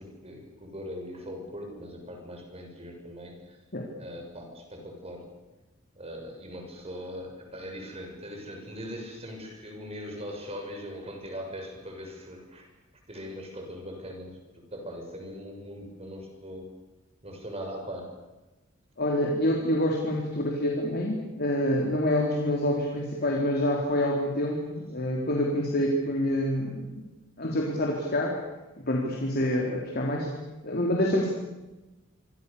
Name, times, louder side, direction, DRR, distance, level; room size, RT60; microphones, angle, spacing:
voice 1, 0.0-3.6 4.0-5.3 6.0-12.7 13.1-16.7 17.2-18.2, equal, 30° right, 3 dB, 7.1 m, -40 dB
voice 2, 19.0-26.8 27.4-28.4 28.8-30.3 30.6-31.3, left 1 dB, 50° left, -1 dB, 3.8 m, -27 dB
26.5 x 25.5 x 7.0 m, 1.1 s
head